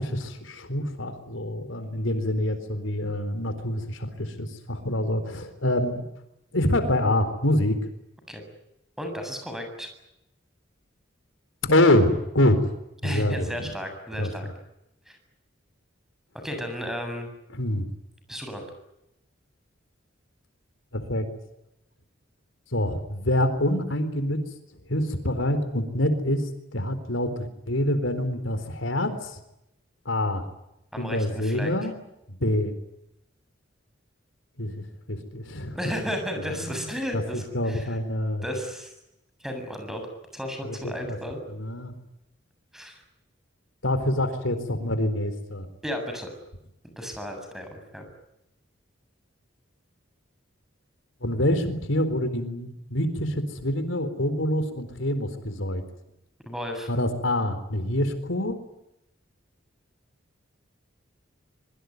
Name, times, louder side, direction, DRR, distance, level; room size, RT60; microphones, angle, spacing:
voice 1, 0.0-6.1 6.5-7.8 11.6-12.7 13.0-13.7 14.2-14.5 17.5-17.9 20.9-21.3 22.7-24.4 24.9-29.4 30.1-30.4 31.0-32.0 32.3-32.7 34.6-35.8 36.4-36.8 37.1-38.4 40.6-41.2 41.5-41.9 43.8-45.7 51.2-55.8 56.9-58.6, left 1 dB, 85° left, 9 dB, 4.1 m, -26 dB
voice 2, 9.0-9.9 13.0-14.5 15.1-15.2 16.4-17.3 18.3-18.7 30.9-31.7 35.7-38.0 38.4-38.9 39.4-40.1 40.3-41.4 42.7-43.0 45.8-46.3 47.0-48.0 56.5-56.9, equal, ahead, 5 dB, 7.6 m, -33 dB
25.5 x 23.5 x 9.5 m, 0.85 s
head